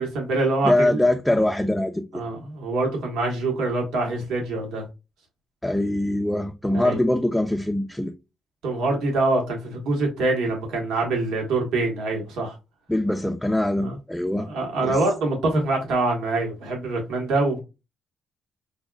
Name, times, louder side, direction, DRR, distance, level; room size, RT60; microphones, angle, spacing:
voice 1, 0.0-1.0 2.1-4.8 6.7-7.0 8.6-12.5 13.8-14.0 14.5-17.6, right 2 dB, 85° right, 1.3 m, -25 dB
voice 2, 0.6-2.2 5.6-8.1 12.9-14.5 14.8-15.0, left 1 dB, 5° left, 0.4 m, -23 dB
5.3 x 2.4 x 2.3 m
cardioid pair, 90°, 0 cm